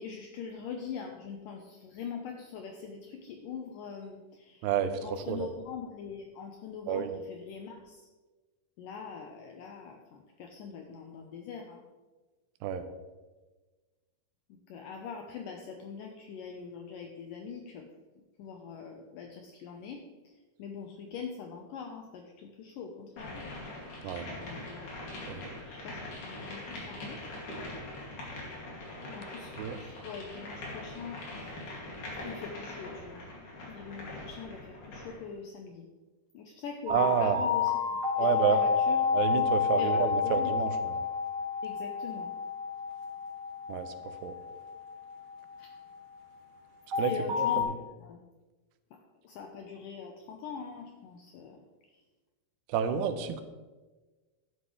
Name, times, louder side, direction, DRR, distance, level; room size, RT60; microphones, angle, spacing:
voice 1, 0.0-8.1 8.8-11.8 14.7-17.9 18.4-20.0 20.6-23.5 24.4-27.2 29.1-31.2 32.2-33.2 33.7-35.9 36.3-38.0 38.3-39.0 39.8-40.5 41.6-42.3 45.6-45.7 47.0-47.7 48.0-48.2 49.2-51.6, left 6 dB, 80° left, 2 dB, 1.9 m, -43 dB
voice 2, 4.6-5.5 6.9-7.2 12.6-12.8 24.0-24.3 25.3-25.5 29.6-29.8 36.9-37.4 38.2-38.7 39.1-41.0 43.7-43.9 44.2-44.3 47.0-47.7 52.7-53.4, right 8 dB, 85° right, 9 dB, 2.9 m, -30 dB
sound 1, 23.2-35.2, left 2 dB, 50° left, 3.6 m, -42 dB
sound 2, 36.9-45.9 46.9-47.6, left 6 dB, 55° right, 1.4 m, -29 dB
11.5 x 11.0 x 3.2 m, 1.2 s
omnidirectional pair, 4.8 m